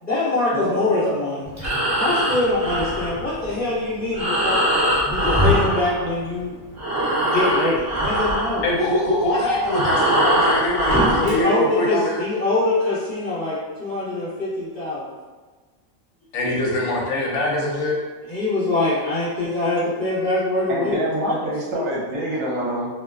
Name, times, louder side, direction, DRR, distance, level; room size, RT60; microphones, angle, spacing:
voice 1, 0.0-1.4 1.9-4.7 5.1-6.6 7.2-8.6 10.9-15.1 18.3-21.5 21.7-21.9, left 2 dB, 35° left, -12 dB, 1.1 m, -24 dB
voice 2, 0.5-1.3 9.2-9.3 20.7-22.9, right 1 dB, 75° right, -5 dB, 1.0 m, -26 dB
Breathing, 1.4-6.4 6.7-11.4, equal, 25° right, 0.3 m, -22 dB
voice 3, 8.6-12.2 16.3-18.0, left 1 dB, 75° left, -3 dB, 0.9 m, -23 dB
2.4 x 2.2 x 2.2 m, 1.4 s
omnidirectional pair, 1.4 m